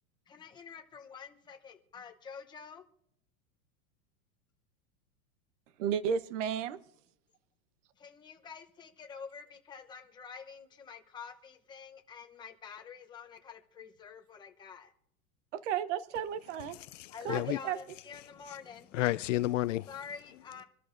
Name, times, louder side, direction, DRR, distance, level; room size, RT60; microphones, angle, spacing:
voice 1, 0.3-2.8 8.0-14.9 17.1-19.0 19.9-20.6, left 6 dB, 10° left, 0.7 m, -47 dB
voice 2, 5.8-6.8 15.5-16.8 17.2-17.8, right 8 dB, 55° right, 1.0 m, -33 dB
voice 3, 16.7-17.6 18.9-19.8, left 16 dB, 60° left, 0.5 m, -31 dB
26.5 x 13.0 x 2.5 m
supercardioid pair, 160°, 43 cm